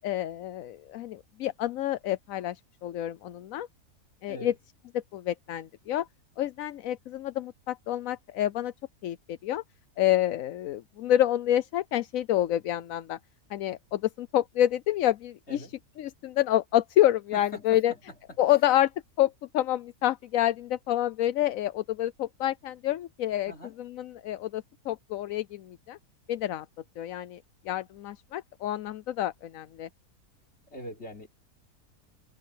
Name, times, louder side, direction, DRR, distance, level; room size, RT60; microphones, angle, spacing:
voice 1, 0.0-3.7 4.2-4.5 5.1-6.1 6.4-8.7 9.0-9.6 10.0-13.2 13.5-15.7 16.0-17.9 18.4-18.9 19.2-23.5 23.8-26.0 26.3-26.7 27.0-29.9, left 12 dB, 65° left, 1.0 m, -28 dB
voice 2, 17.3-18.0 23.5-23.8 30.7-31.3, left 1 dB, 40° left, 3.8 m, -42 dB
omnidirectional pair, 1.7 m